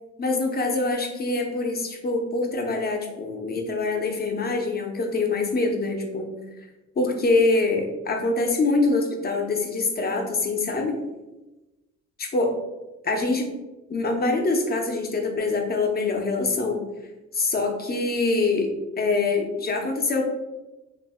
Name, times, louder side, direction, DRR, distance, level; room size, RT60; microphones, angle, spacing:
voice 1, 0.2-6.3 7.0-11.0 12.2-12.5 13.0-13.5 13.9-16.8 17.3-20.2, left 3 dB, 30° left, 2 dB, 0.6 m, -24 dB
2.5 x 2.0 x 3.5 m, 1.1 s
cardioid pair, 90°, 30 cm